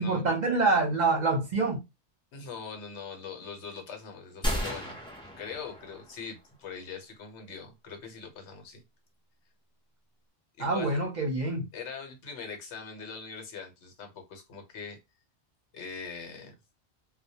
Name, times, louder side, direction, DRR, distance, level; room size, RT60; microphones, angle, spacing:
voice 1, 0.0-1.8 10.6-11.7, right 3 dB, 45° right, 0.7 m, -26 dB
voice 2, 2.3-5.0 5.4-8.8 10.6-11.0 11.7-15.0 15.7-16.5, left 5 dB, 80° left, 1.0 m, -42 dB
sound 1, 4.4-6.3, equal, 10° left, 0.3 m, -34 dB
2.1 x 2.1 x 2.7 m
omnidirectional pair, 1.2 m